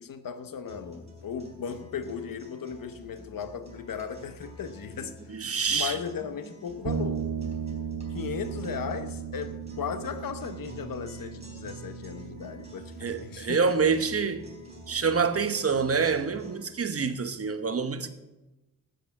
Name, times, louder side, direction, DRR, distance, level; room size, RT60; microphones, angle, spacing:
voice 1, 0.0-7.3 8.1-14.1 17.0-17.2, left 7 dB, 80° left, 1.0 m, -37 dB
sound 1, 0.6-16.6, equal, 20° right, 3.9 m, -48 dB
voice 2, 5.3-6.0 13.0-14.4 14.9-18.1, right 5 dB, 45° right, 0.9 m, -26 dB
sound 2, 6.8-16.3, right 7 dB, 60° right, 1.3 m, -37 dB
13.0 x 8.5 x 5.9 m
wide cardioid pair, 120°, 33 cm